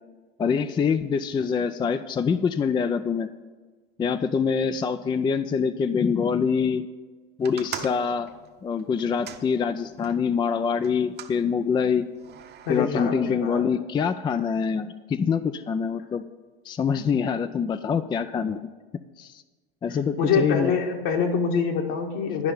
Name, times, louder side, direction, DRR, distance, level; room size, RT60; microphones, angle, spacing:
voice 1, 0.4-3.3 4.0-6.9 7.4-8.3 8.6-12.1 12.7-16.2 16.7-18.7 19.2-19.4 19.8-20.7, left 6 dB, 15° left, 11 dB, 0.4 m, -25 dB
sound 1, 7.4-10.2 10.8-11.4 12.2-12.8, right 9 dB, 35° right, 0.9 m, -40 dB
voice 2, 12.7-13.6 20.2-22.5, left 6 dB, 65° left, 2 dB, 2.0 m, -25 dB
11.5 x 5.4 x 8.7 m, 1.3 s
hypercardioid pair, 90°, 29 cm